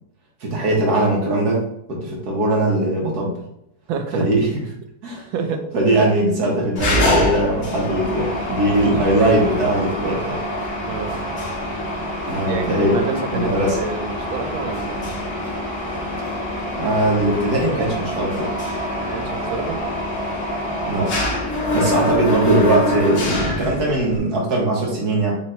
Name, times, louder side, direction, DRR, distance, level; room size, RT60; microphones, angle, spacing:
voice 1, 0.4-1.6 1.9-3.4 4.1-4.5 5.0-5.3 5.7-10.4 12.3-12.9 13.3-13.8 16.8-18.5 20.9-21.2 21.7-25.4, right 1 dB, 60° right, -2 dB, 1.4 m, -20 dB
voice 2, 3.9-4.3 5.3-5.7 10.9-11.2 12.5-15.2 19.0-19.8 21.6-21.9, right 5 dB, 85° right, 6 dB, 1.4 m, -28 dB
Mechanisms, 6.8-24.2, left 1 dB, 40° left, 0.9 m, -25 dB
4.2 x 2.9 x 4.3 m, 0.77 s
omnidirectional pair, 2.1 m